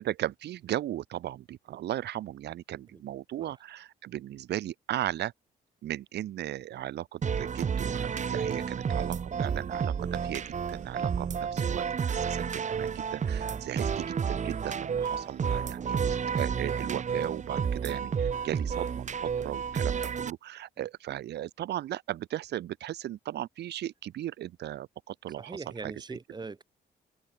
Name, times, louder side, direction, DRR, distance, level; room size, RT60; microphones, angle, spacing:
voice 1, 0.0-5.3 5.8-26.2, right 13 dB, 75° right, 2.5 m, -37 dB
sound 1, 7.2-20.3, right 7 dB, 45° right, 2.0 m, -31 dB
voice 2, 25.4-26.6, right 4 dB, 25° right, 2.6 m, -42 dB
cardioid pair, 85°, 17 cm